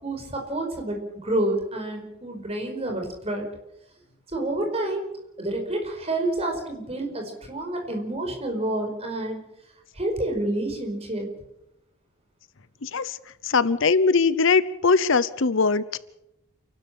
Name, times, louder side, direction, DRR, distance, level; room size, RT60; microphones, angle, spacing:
voice 1, 0.0-3.5 4.3-5.1 5.4-9.4 9.9-11.3, right 1 dB, 25° right, 3 dB, 5.0 m, -28 dB
voice 2, 12.8-13.2 13.4-16.0, left 4 dB, 60° left, 16 dB, 0.8 m, -21 dB
28.5 x 12.5 x 8.6 m, 0.85 s
head